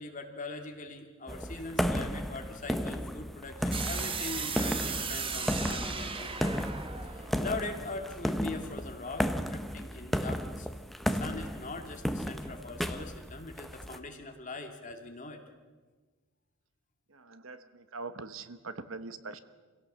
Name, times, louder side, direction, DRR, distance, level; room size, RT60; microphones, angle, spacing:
voice 1, 0.0-6.6 7.0-10.7 11.0-15.4, left 3 dB, 35° left, 3 dB, 2.3 m, -41 dB
sound 1, 1.3-14.0, equal, ahead, 0.7 m, -34 dB
sound 2, 3.7-8.6, right 5 dB, 25° right, 1.2 m, -37 dB
voice 2, 17.1-19.4, right 3 dB, 60° right, 12 dB, 1.1 m, -42 dB
26.0 x 17.0 x 7.4 m, 1.4 s
head